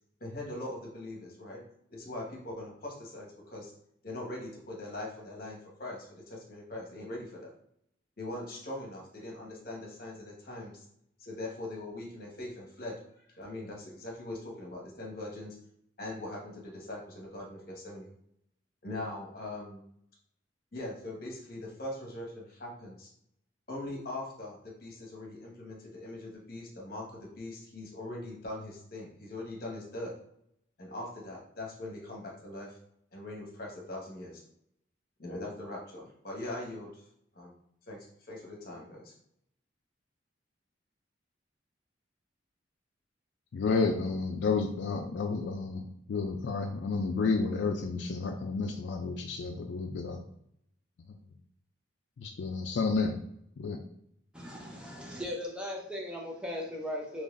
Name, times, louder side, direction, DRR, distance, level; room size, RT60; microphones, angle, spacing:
voice 1, 0.2-1.6 1.9-3.7 4.0-7.5 8.2-10.8 11.2-13.0 13.3-15.6 16.0-18.1 18.8-19.8 20.7-23.1 23.7-30.2 30.8-32.8 33.1-34.4 35.2-37.1 37.3-37.5 37.9-39.1, left 1 dB, 50° left, -1 dB, 1.1 m, -41 dB
voice 2, 43.5-50.2 51.1-51.2 52.2-53.2 53.6-53.8, left 4 dB, 70° left, 4 dB, 0.4 m, -31 dB
voice 3, 54.3-57.2, left 1 dB, 5° right, -2 dB, 0.6 m, -38 dB
4.0 x 3.0 x 2.5 m, 0.72 s
head